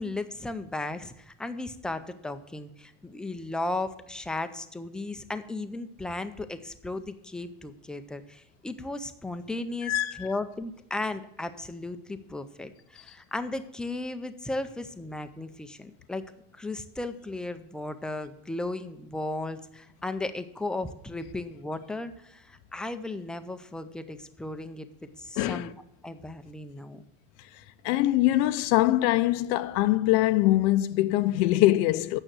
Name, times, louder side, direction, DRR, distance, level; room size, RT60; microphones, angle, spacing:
voice 1, 0.0-16.2 16.6-24.9 25.2-25.7 26.0-27.0, left 2 dB, 5° left, 0.4 m, -35 dB
voice 2, 9.8-10.3 25.4-25.7 27.8-32.2, left 16 dB, 80° left, 0.6 m, -23 dB
8.9 x 6.6 x 7.4 m
cardioid pair, 170°, 31 cm